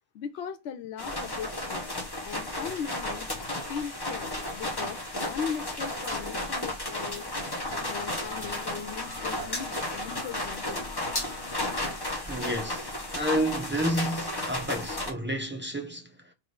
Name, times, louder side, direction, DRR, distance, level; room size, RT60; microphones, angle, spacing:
voice 1, 0.1-1.9 2.2-3.3 3.6-7.5 7.8-10.8, left 7 dB, 65° left, 0.9 m, -38 dB
sound 1, 1.0-15.1, left 1 dB, 20° left, 0.9 m, -33 dB
sound 2, 7.2-12.1, left 7 dB, 80° left, 1.2 m, -47 dB
voice 2, 12.3-16.3, right 1 dB, 15° right, 0.5 m, -31 dB
3.3 x 3.2 x 3.8 m
omnidirectional pair, 1.3 m